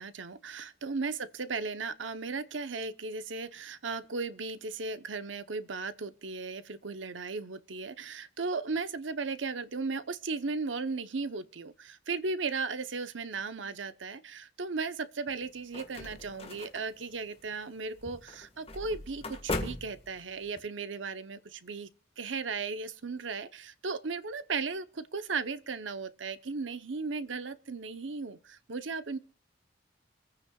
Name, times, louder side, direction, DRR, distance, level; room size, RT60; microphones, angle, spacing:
voice 1, 0.0-21.9 22.2-29.2, right 4 dB, 85° right, 0.9 m, -36 dB
sound 1, 15.3-20.6, left 2 dB, 30° left, 1.6 m, -40 dB
26.0 x 9.4 x 2.4 m
head